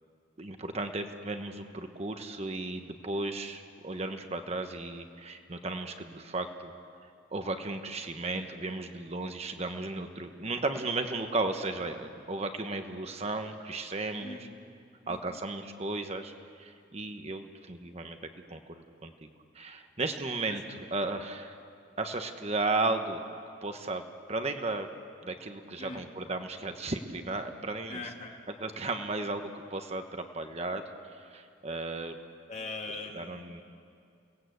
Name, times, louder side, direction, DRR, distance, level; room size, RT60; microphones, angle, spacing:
voice 1, 0.4-6.7 7.3-14.4 15.1-16.3 16.6-18.2 18.5-19.3 19.5-20.6 20.9-21.5 22.0-23.2 23.6-24.0 24.3-24.9 25.2-28.0 28.6-30.8 31.1-32.2 33.1-33.6, right 2 dB, 35° right, 6 dB, 1.2 m, -34 dB
voice 2, 14.2-14.6 15.0-15.4 20.5-20.6 25.8-26.1 27.9-28.4 32.5-33.4, left 3 dB, 35° left, 1 dB, 2.4 m, -41 dB
29.5 x 19.0 x 8.1 m, 2.3 s
head